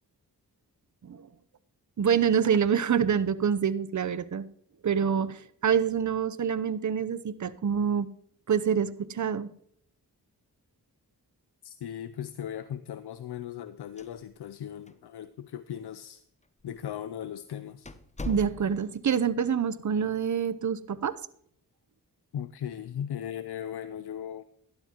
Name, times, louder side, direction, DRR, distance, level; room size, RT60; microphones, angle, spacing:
voice 1, 2.0-4.5 4.8-8.1 8.5-9.5 18.3-21.1, right 7 dB, 50° right, 15 dB, 0.7 m, -26 dB
voice 2, 11.6-16.2 16.6-17.9 22.3-24.4, left 9 dB, 80° left, 13 dB, 0.6 m, -38 dB
sound 1, 14.0-14.6 14.9-15.0 15.7-15.8 16.6-16.8 17.2-17.3 17.8-19.0, left 2 dB, 20° left, 0.9 m, -40 dB
12.0 x 11.5 x 3.0 m, 0.66 s
cardioid pair, 50°, 39 cm